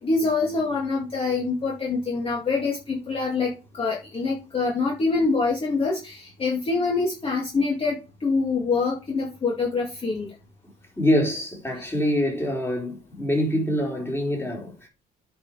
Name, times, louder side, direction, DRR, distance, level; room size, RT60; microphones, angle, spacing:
voice 1, 0.0-10.3, left 4 dB, 35° left, 2.3 m, -25 dB
voice 2, 11.0-14.9, equal, 15° left, 3.7 m, -25 dB
9.5 x 5.6 x 4.9 m
cardioid pair, 110°, 17 cm